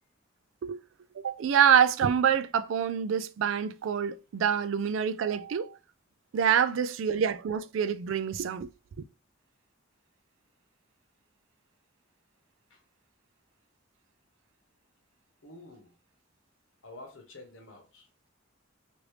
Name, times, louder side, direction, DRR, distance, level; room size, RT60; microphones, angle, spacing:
voice 1, 1.2-5.8 6.3-8.7, right 8 dB, 75° right, 0.3 m, -26 dB
voice 2, 6.4-6.8 12.7-12.8 15.4-15.9 16.8-18.1, left 2 dB, 70° left, 1.1 m, -50 dB
3.1 x 2.6 x 3.1 m
head